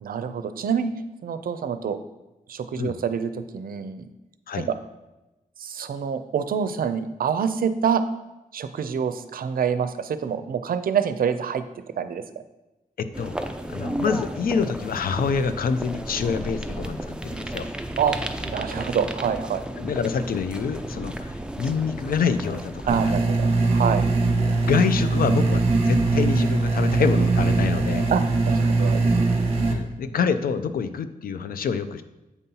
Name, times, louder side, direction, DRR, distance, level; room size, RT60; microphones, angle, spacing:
voice 1, 0.0-0.9 1.2-2.0 2.5-4.1 4.7-4.8 5.6-8.0 8.5-11.6 12.0-12.2 18.0-18.2 18.5-19.6 22.9-24.0 28.1-29.0, right 7 dB, 85° right, 11 dB, 0.5 m, -26 dB
voice 2, 13.0-13.4 13.7-17.7 19.8-23.2 24.6-28.1 29.7-32.0, left 6 dB, 85° left, 11 dB, 0.4 m, -26 dB
sound 1, 13.1-23.1, right 1 dB, 5° right, 0.5 m, -33 dB
sound 2, 22.9-29.7, right 3 dB, 40° right, 1.0 m, -21 dB
8.2 x 5.3 x 2.8 m, 1.0 s
wide cardioid pair, 95°, 15 cm